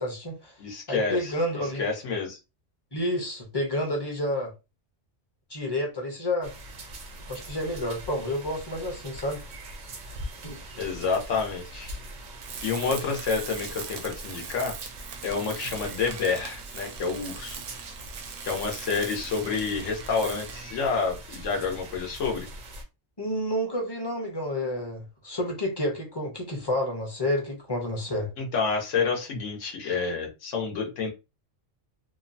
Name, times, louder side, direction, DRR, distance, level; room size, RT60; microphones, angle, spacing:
voice 1, 0.0-0.6 0.9-1.8 2.9-4.5 5.5-6.5 7.3-9.4 10.4-10.6 23.2-28.3, left 1 dB, 25° left, 0.7 m, -29 dB
voice 2, 0.6-1.3 1.8-2.4 10.8-11.9 12.6-14.7 15.2-17.6 18.4-22.5 28.4-31.1, left 5 dB, 80° left, 1.2 m, -29 dB
sound 1, 6.4-22.8, right 1 dB, 55° right, 0.6 m, -43 dB
Tools, 12.4-20.8, right 7 dB, 75° right, 0.9 m, -41 dB
3.0 x 2.1 x 2.6 m
omnidirectional pair, 1.3 m